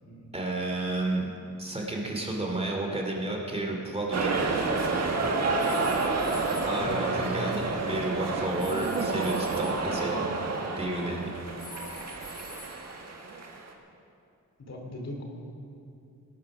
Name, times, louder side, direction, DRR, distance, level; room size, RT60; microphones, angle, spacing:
voice 1, 0.3-4.6 6.7-10.3 10.7-11.3, right 2 dB, 20° right, 0 dB, 2.5 m, -31 dB
sound 1, 4.1-13.7, right 3 dB, 55° right, 1.7 m, -29 dB
sound 2, 5.6-7.8 8.6-10.0 11.6-13.3, left 2 dB, 15° left, 2.5 m, -47 dB
voice 2, 6.8-7.4 14.6-15.2, left 1 dB, 55° left, 1 dB, 2.7 m, -40 dB
18.5 x 9.8 x 6.1 m, 2.5 s
wide cardioid pair, 105°, 32 cm